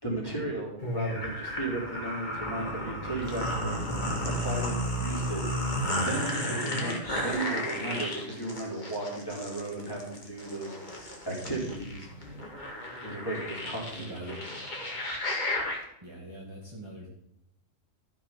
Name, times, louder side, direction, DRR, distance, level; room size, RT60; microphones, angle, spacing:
voice 1, 0.0-3.8 4.2-5.4 5.9-12.1 13.0-14.4, right 2 dB, 15° left, -3 dB, 3.3 m, -35 dB
sound 1, 0.8-15.8, left 1 dB, 35° left, 2.1 m, -33 dB
voice 2, 14.0-14.3 16.0-17.1, right 1 dB, 20° right, -4 dB, 2.1 m, -44 dB
13.0 x 6.1 x 5.8 m, 0.81 s
omnidirectional pair, 1.3 m